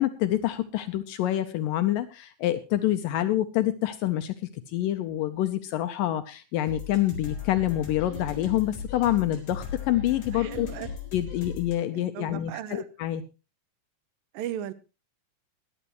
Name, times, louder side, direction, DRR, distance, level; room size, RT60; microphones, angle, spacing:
voice 1, 0.0-4.3 4.7-10.7 11.1-13.2, left 13 dB, 75° left, 9 dB, 2.3 m, -27 dB
sound 1, 6.7-11.8, left 6 dB, 55° left, 5.6 m, -37 dB
voice 2, 10.3-10.9 12.1-12.9 14.3-14.7, right 11 dB, 75° right, 15 dB, 2.5 m, -36 dB
20.5 x 11.0 x 3.1 m, 0.29 s
omnidirectional pair, 4.2 m